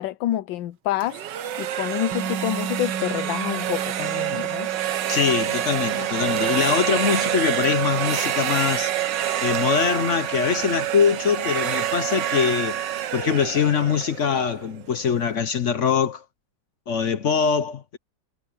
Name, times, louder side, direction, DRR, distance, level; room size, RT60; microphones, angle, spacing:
voice 1, 0.0-4.7, left 13 dB, 85° left, 1.4 m, -28 dB
sound 1, 1.0-14.9, right 11 dB, 70° right, 1.5 m, -27 dB
sound 2, 2.1-14.0, right 7 dB, 90° right, 2.6 m, -38 dB
voice 2, 5.1-9.0 9.4-12.8 13.1-16.2 16.9-18.0, left 7 dB, 55° left, 0.8 m, -23 dB
omnidirectional pair, 2.1 m